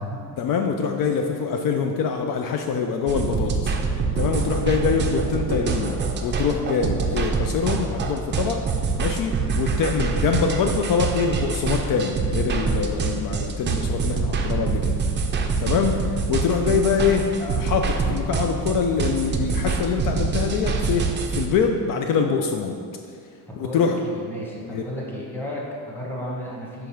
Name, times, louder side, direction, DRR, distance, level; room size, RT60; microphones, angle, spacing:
voice 1, 0.4-3.7 4.2-8.6 9.0-15.0 15.6-22.8 23.6-24.0 24.7-24.8, left 5 dB, 60° left, 4 dB, 0.5 m, -24 dB
sound 1, 3.1-21.5, right 4 dB, 30° right, 0.4 m, -25 dB
voice 2, 23.5-26.9, equal, 5° left, -4 dB, 1.1 m, -33 dB
5.1 x 4.6 x 5.8 m, 2.3 s
cardioid pair, 160°, 38 cm